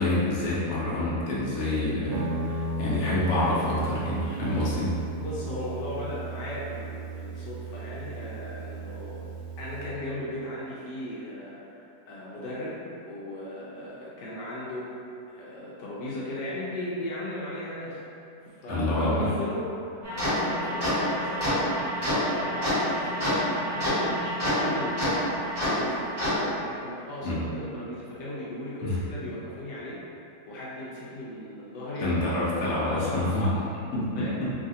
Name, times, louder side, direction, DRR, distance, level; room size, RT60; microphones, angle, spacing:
voice 1, 0.0-4.9 18.7-19.3 27.2-27.4 28.8-29.0 32.0-33.5 33.9-34.5, left 1 dB, 60° left, -7 dB, 1.0 m, -27 dB
Guitar, 2.1-9.9, right 2 dB, 80° right, 1.2 m, -34 dB
voice 2, 5.2-9.2 9.6-12.7 13.1-14.8 15.3-18.0 18.4-19.6 19.9-26.0 26.4-30.0 30.5-32.1 32.6-33.6 34.2-34.4, left 1 dB, 80° left, -7 dB, 1.2 m, -37 dB
sound 1, 20.0-26.3, equal, 15° right, 1.2 m, -27 dB
3.1 x 2.5 x 2.6 m, 2.7 s
omnidirectional pair, 1.9 m